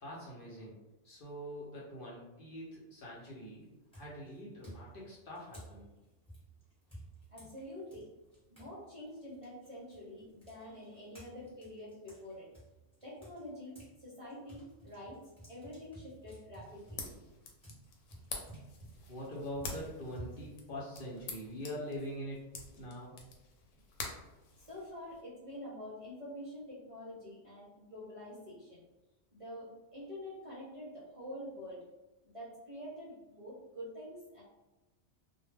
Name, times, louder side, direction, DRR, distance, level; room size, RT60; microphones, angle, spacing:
voice 1, 0.0-0.8 1.0-3.7 3.9-5.9 19.1-22.4 22.7-23.1, equal, 55° left, -5 dB, 0.7 m, -44 dB
sound 1, 3.0-3.4 3.9-8.7 9.1-13.9 14.3-21.7, right 1 dB, 5° left, 1.0 m, -54 dB
voice 2, 7.3-8.1 8.5-12.5 13.0-15.2 15.5-17.1 24.6-28.8 29.3-31.8 32.2-34.4, left 1 dB, 40° right, -7 dB, 0.6 m, -47 dB
sound 2, 16.6-25.2, left 4 dB, 85° left, 0.9 m, -47 dB
2.1 x 2.1 x 3.1 m, 1.1 s
omnidirectional pair, 1.2 m